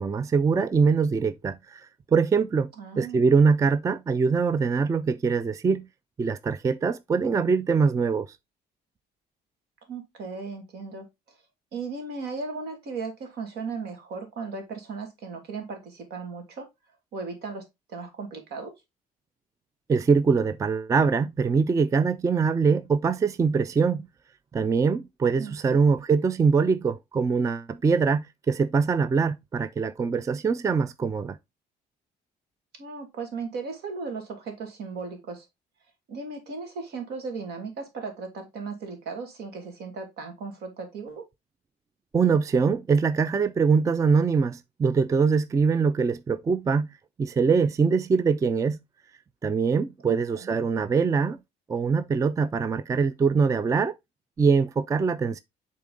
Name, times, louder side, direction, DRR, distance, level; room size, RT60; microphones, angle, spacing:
voice 1, 0.0-1.8 2.1-2.7 3.0-5.9 6.2-8.3 19.9-24.1 24.5-31.4 42.1-46.9 47.2-48.8 49.4-51.4 51.7-53.9 54.4-55.4, right 5 dB, 20° right, 0.4 m, -23 dB
voice 2, 2.8-3.2 9.9-11.1 11.7-16.7 17.1-18.7 25.4-25.8 32.8-35.5 36.1-41.2 50.0-50.6, right 4 dB, 75° right, 2.2 m, -36 dB
7.1 x 3.8 x 3.7 m
cardioid pair, 110°, 17 cm